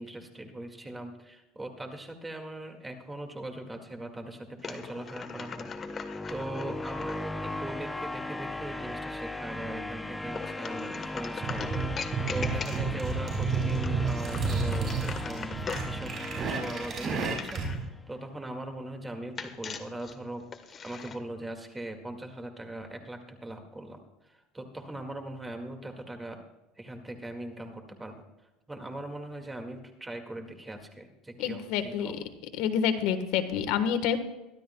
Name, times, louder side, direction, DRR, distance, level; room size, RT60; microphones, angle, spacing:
voice 1, 0.0-11.7 12.3-16.1 16.4-20.4 20.8-26.4 26.8-28.2 28.7-32.2, right 1 dB, 10° right, 4 dB, 2.0 m, -40 dB
sound 1, 4.6-7.2 10.3-13.1 13.7-16.0 17.2-17.9 19.4-21.2, left 6 dB, 30° left, 1.2 m, -41 dB
sound 2, 5.0-18.0, left 2 dB, 10° left, 0.8 m, -38 dB
sound 3, 11.4-17.8, right 4 dB, 35° right, 5.5 m, -31 dB
voice 2, 31.4-32.1 32.6-34.2, left 8 dB, 70° left, 9 dB, 1.3 m, -28 dB
23.5 x 12.0 x 2.3 m, 1.0 s
supercardioid pair, 130°, 0 cm